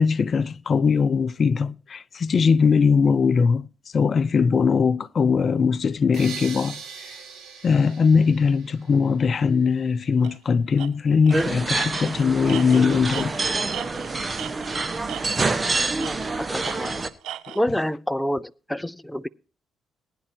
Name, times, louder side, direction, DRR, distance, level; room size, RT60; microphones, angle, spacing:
voice 1, 0.0-3.7 3.9-7.1 7.6-13.4 17.5-17.6, left 5 dB, 45° left, 0.6 m, -20 dB
sound 1, 6.1-9.1, right 6 dB, 65° right, 5.9 m, -40 dB
Tools, 10.2-10.4 10.8-10.9 11.3-11.5 11.8-14.8 15.1-15.6 16.0-17.6, right 12 dB, 85° right, 0.6 m, -38 dB
sound 2, 11.3-17.1, right 3 dB, 30° right, 1.1 m, -26 dB
voice 2, 16.5-17.0 17.5-19.3, equal, 5° left, 0.6 m, -27 dB
20.0 x 10.0 x 2.8 m
cardioid pair, 90°, 0 cm